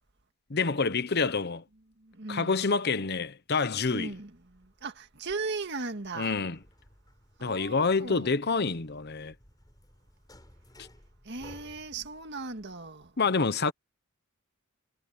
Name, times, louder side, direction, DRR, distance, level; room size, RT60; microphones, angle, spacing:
voice 1, 0.5-1.6 2.3-4.1 6.1-6.6 7.4-9.3 13.2-13.7, left 4 dB, 50° left, 0.9 m, -27 dB
voice 2, 2.0-2.6 3.9-6.4 7.4-8.3 11.2-13.1, right 3 dB, 55° right, 1.9 m, -38 dB
sound 1, 4.1-13.1, left 1 dB, 20° left, 5.3 m, -58 dB
head